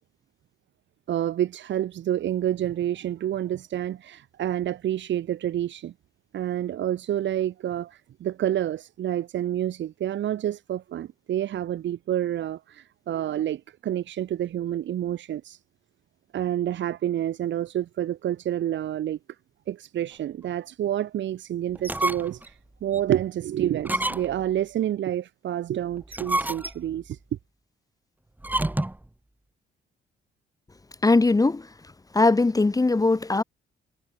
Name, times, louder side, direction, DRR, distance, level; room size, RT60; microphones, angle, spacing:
voice 1, 1.1-5.9 6.3-15.6 16.3-19.2 19.7-27.2, right 11 dB, 70° right, 1.6 m, -28 dB
sound 1, 21.7-22.5 22.9-23.0 23.8-24.5 26.0-27.0 28.4-29.1, right 1 dB, 10° right, 1.9 m, -28 dB
voice 2, 31.0-31.7 32.1-33.4, left 3 dB, 20° left, 1.1 m, -20 dB
cardioid pair, 90°, 20 cm